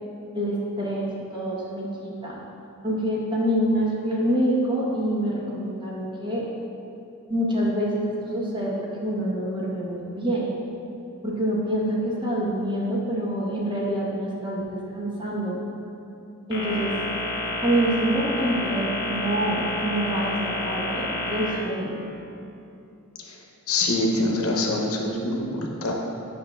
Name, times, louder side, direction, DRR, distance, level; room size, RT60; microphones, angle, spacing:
voice 1, 0.3-2.4 2.8-6.4 7.3-10.5 11.2-15.6 16.5-16.9 17.6-22.0, right 1 dB, 20° right, -5 dB, 0.9 m, -26 dB
sound 1, 16.5-21.5, left 1 dB, 55° left, 1.4 m, -29 dB
voice 2, 23.7-25.9, left 2 dB, 85° left, 0 dB, 0.8 m, -25 dB
8.2 x 5.5 x 2.2 m, 2.8 s
head